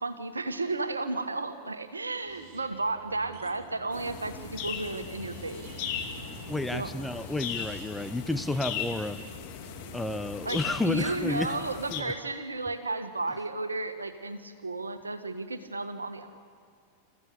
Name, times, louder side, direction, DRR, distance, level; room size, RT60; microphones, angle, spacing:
voice 1, 0.0-5.6 6.7-6.9 10.4-16.3, right 3 dB, 80° right, 9 dB, 1.6 m, -33 dB
sound 1, 2.3-10.1, right 6 dB, 45° right, 4.2 m, -49 dB
sound 2, 3.9-12.0, left 8 dB, 45° left, 2.6 m, -38 dB
voice 2, 6.5-9.2 9.9-11.6 11.9-12.1, left 2 dB, 5° left, 10 dB, 0.8 m, -31 dB
29.0 x 15.0 x 8.3 m, 2.3 s
figure-of-eight pair, 90°, 0 cm